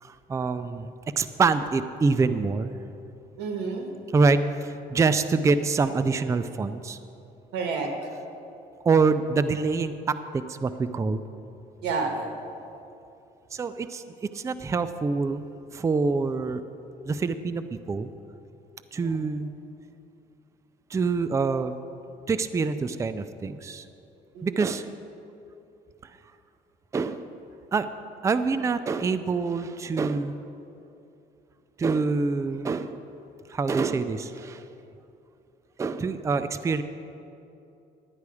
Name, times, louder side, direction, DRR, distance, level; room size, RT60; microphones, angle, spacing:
voice 1, 0.0-2.7 4.1-7.0 8.9-11.2 13.5-15.4 15.7-16.6 17.1-18.1 18.9-19.5 20.9-21.8 22.3-23.9 24.4-24.9 26.9-27.3 27.7-27.9 28.2-30.4 31.8-33.0 33.5-34.6 35.8-36.8, right 4 dB, 20° right, 12 dB, 0.4 m, -26 dB
voice 2, 3.4-3.9 7.5-8.1 11.8-12.3 19.0-19.2 24.3-24.6, right 4 dB, 85° right, 3 dB, 1.5 m, -30 dB
11.5 x 9.5 x 4.8 m, 2.8 s
cardioid pair, 110°, 17 cm